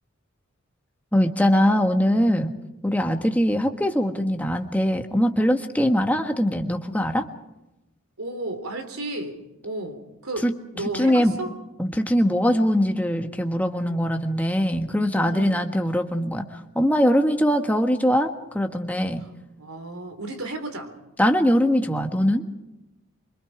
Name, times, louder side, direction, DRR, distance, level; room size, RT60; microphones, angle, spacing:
voice 1, 1.1-2.5 2.8-7.3 10.4-10.5 10.9-11.4 11.8-19.2 21.2-22.5, equal, 5° left, 5 dB, 1.5 m, -22 dB
voice 2, 8.2-9.4 9.6-10.5 10.7-11.5 15.3-15.6 19.2-20.9, right 2 dB, 85° right, 7 dB, 3.7 m, -33 dB
25.5 x 24.5 x 5.0 m, 0.97 s
head